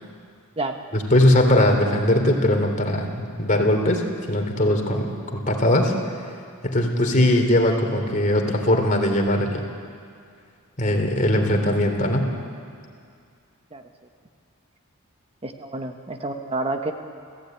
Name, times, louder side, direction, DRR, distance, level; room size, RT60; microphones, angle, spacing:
voice 1, 0.9-5.9 6.6-9.6 10.8-12.3, left 1 dB, 35° left, 3 dB, 3.3 m, -20 dB
voice 2, 15.4-16.9, right 2 dB, 25° right, 5 dB, 1.2 m, -29 dB
29.5 x 15.5 x 9.3 m, 2.2 s
head